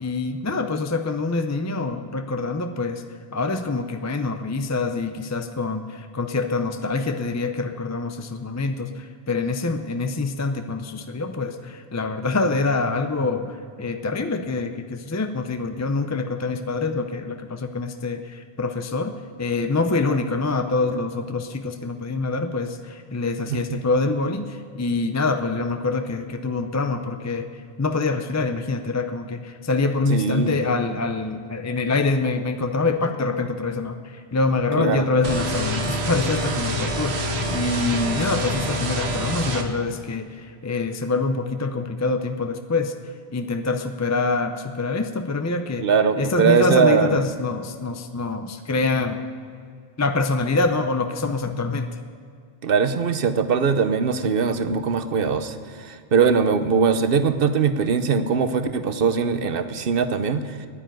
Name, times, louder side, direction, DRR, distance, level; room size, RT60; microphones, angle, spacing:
voice 1, 0.0-3.0 3.3-19.1 19.4-27.5 27.8-42.9 43.3-45.9 46.2-49.2 50.0-51.9, left 3 dB, 25° left, 7 dB, 0.4 m, -25 dB
voice 2, 30.1-30.7 34.7-35.1 45.8-47.2 52.6-60.7, right 6 dB, 60° right, 10 dB, 1.0 m, -21 dB
sound 1, 35.2-39.6, equal, 75° right, 1.4 m, -26 dB
10.0 x 9.9 x 8.9 m, 2.3 s
omnidirectional pair, 1.1 m